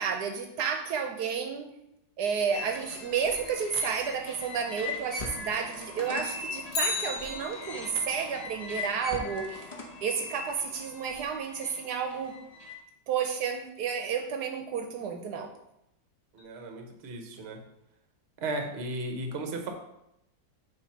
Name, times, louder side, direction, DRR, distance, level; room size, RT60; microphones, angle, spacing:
voice 1, 0.0-1.7 2.2-9.7 10.0-12.4 13.1-15.5, right 6 dB, 75° right, 5 dB, 1.1 m, -31 dB
sound 1, 2.5-12.8, left 3 dB, 35° left, 0.7 m, -40 dB
Bicycle, 6.7-8.1 16.4-16.5, left 3 dB, 55° left, 1.2 m, -33 dB
voice 2, 16.3-17.6 18.4-19.7, right 2 dB, 45° right, 4 dB, 1.0 m, -35 dB
7.1 x 3.2 x 5.7 m, 0.82 s
omnidirectional pair, 1.8 m